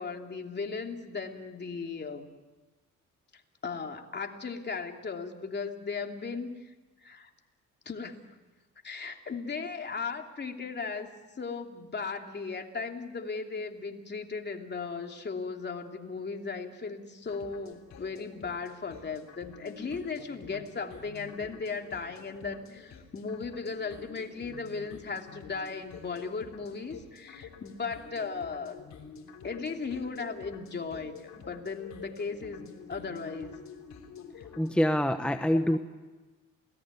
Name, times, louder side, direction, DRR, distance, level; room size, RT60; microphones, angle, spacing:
voice 1, 0.0-2.3 3.3-6.7 7.0-7.3 7.8-8.4 8.8-28.8 29.4-33.6 34.4-34.5 35.7-35.8, left 4 dB, 35° left, 3 dB, 3.0 m, -37 dB
sound 1, 17.2-34.7, left 6 dB, 65° left, 3.3 m, -49 dB
voice 2, 34.6-35.8, equal, 5° left, 7 dB, 1.1 m, -25 dB
28.5 x 18.5 x 9.7 m, 1.2 s
cardioid pair, 90°, 30 cm